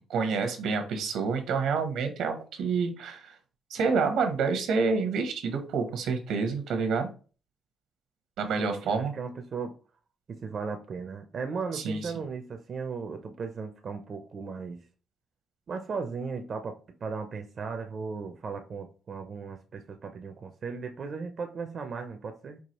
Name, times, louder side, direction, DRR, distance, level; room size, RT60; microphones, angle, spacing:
voice 1, 0.1-3.3 3.7-7.1 8.4-9.1 11.7-12.1, right 5 dB, 80° right, 6 dB, 0.8 m, -28 dB
voice 2, 8.6-9.7 10.3-14.8 15.7-22.6, right 5 dB, 50° right, 6 dB, 0.5 m, -36 dB
4.6 x 2.4 x 2.9 m, 0.37 s
cardioid pair, 90°, 0 cm